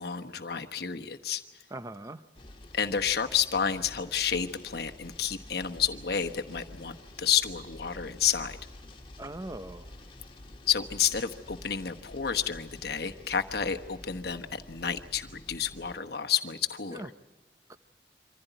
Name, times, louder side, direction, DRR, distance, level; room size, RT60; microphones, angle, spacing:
voice 1, 0.0-1.4 2.7-8.6 10.7-17.1, left 8 dB, 60° left, 6 dB, 1.2 m, -30 dB
voice 2, 1.7-2.2 9.2-9.9 16.9-17.1 17.7-17.8, right 1 dB, 20° right, 11 dB, 0.7 m, -40 dB
sound 1, 2.4-16.0, left 1 dB, 30° left, 1.7 m, -49 dB
25.0 x 15.5 x 9.2 m, 1.3 s
head